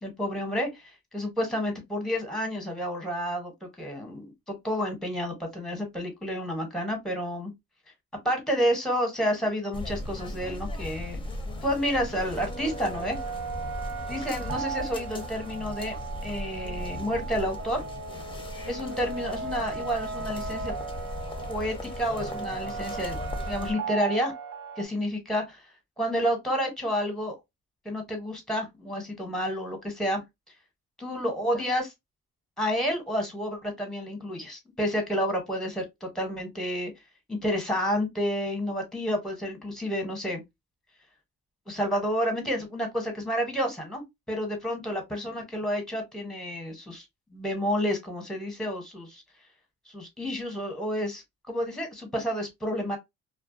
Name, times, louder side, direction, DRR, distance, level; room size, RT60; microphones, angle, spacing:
voice 1, 0.0-7.5 8.2-11.2 11.6-13.2 14.1-15.9 16.2-17.8 18.7-20.7 21.5-23.2 23.5-24.3 24.8-25.7 26.0-27.4 27.8-30.2 31.0-31.9 32.6-36.9 37.3-40.4 41.7-47.1 47.3-49.2 49.9-53.0, equal, ahead, 0.9 m, -30 dB
sound 1, 9.7-23.7, left 1 dB, 15° left, 0.6 m, -38 dB
sound 2, 11.5-24.8, right 5 dB, 50° right, 0.6 m, -37 dB
2.3 x 2.2 x 2.5 m
cardioid pair, 90°, 30 cm